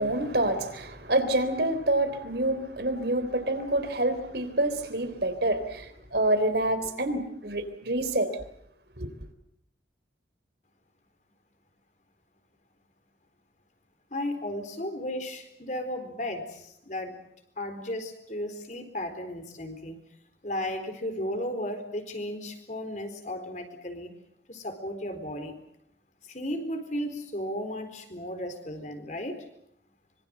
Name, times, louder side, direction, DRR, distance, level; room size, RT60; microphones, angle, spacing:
voice 1, 0.0-8.3 9.0-9.1, right 1 dB, 65° right, 3.5 m, -27 dB
voice 2, 14.1-17.3 17.6-20.0 20.4-24.1 24.5-25.6 26.2-29.5, left 1 dB, 40° left, 4.2 m, -34 dB
25.5 x 24.0 x 7.8 m
head